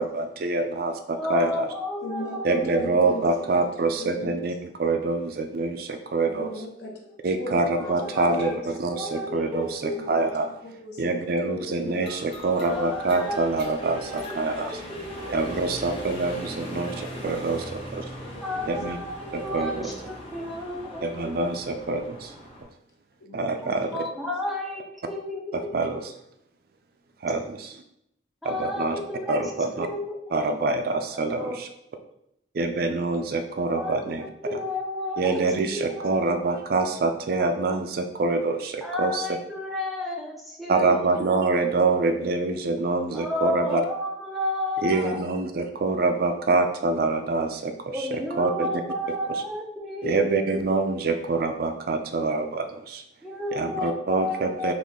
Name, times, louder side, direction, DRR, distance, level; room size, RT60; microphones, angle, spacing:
voice 1, 0.0-1.7 2.4-6.5 7.2-10.5 11.0-14.8 15.3-18.0 18.7-19.0 19.3-19.9 21.0-22.3 23.3-23.9 25.7-26.1 27.2-27.8 28.5-29.0 29.3-29.9 30.3-31.7 32.5-34.2 35.2-39.3 40.7-43.8 44.8-48.7 50.0-53.0 53.5-54.7, right 3 dB, 55° right, 6 dB, 0.4 m, -26 dB
voice 2, 1.1-2.9 7.8-8.5 8.9-10.2 12.6-15.6 18.4-21.1 23.9-24.8 25.1-25.8 28.4-29.5 29.8-30.2 31.1-31.6 33.7-35.4 35.7-36.4 38.8-41.1 41.3-41.6 43.1-45.2 47.9-50.3 53.2-54.7, left 1 dB, ahead, -2 dB, 0.6 m, -32 dB
voice 3, 2.0-3.5 3.7-4.4 6.3-8.6 9.9-10.1 10.8-12.1 13.1-13.4 13.8-14.2 14.5-15.7 16.4-17.7 17.9-18.9 23.2-23.7, left 1 dB, 65° left, 0 dB, 0.9 m, -40 dB
sound 1, 12.0-22.6, equal, 30° left, 1.1 m, -40 dB
4.1 x 3.0 x 3.6 m, 0.78 s
head